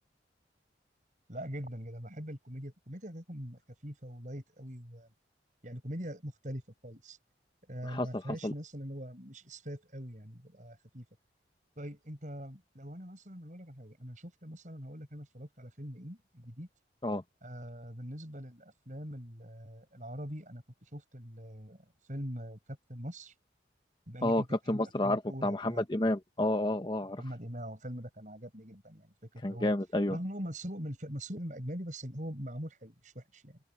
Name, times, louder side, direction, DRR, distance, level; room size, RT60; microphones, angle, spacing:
voice 1, 1.3-5.1 5.6-7.2 7.7-11.1 11.8-16.7 17.4-23.3 24.1-25.8 27.2-29.7 30.1-33.6, equal, 45° right, 7.9 m, -42 dB
voice 2, 24.2-27.2 29.4-30.2, left 1 dB, 25° left, 0.9 m, -30 dB
head